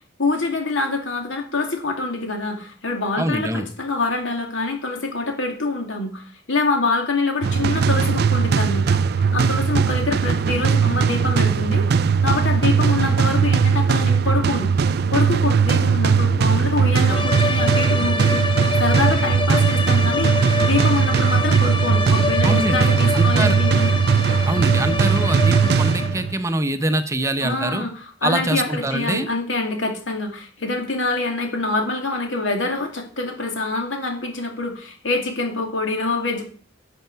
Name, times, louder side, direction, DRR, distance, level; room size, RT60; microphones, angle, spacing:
voice 1, 0.2-11.9 12.2-14.7 15.1-18.4 18.8-23.9 27.4-36.4, left 3 dB, 85° left, 3 dB, 2.3 m, -25 dB
voice 2, 3.2-3.7 22.4-23.6 24.5-27.9 28.2-29.3, right 1 dB, 15° right, 9 dB, 0.6 m, -24 dB
sound 1, 7.4-26.4, right 6 dB, 55° right, 0.4 m, -19 dB
sound 2, 17.1-26.3, left 4 dB, 25° left, 0.6 m, -26 dB
11.0 x 6.8 x 4.6 m, 0.43 s
head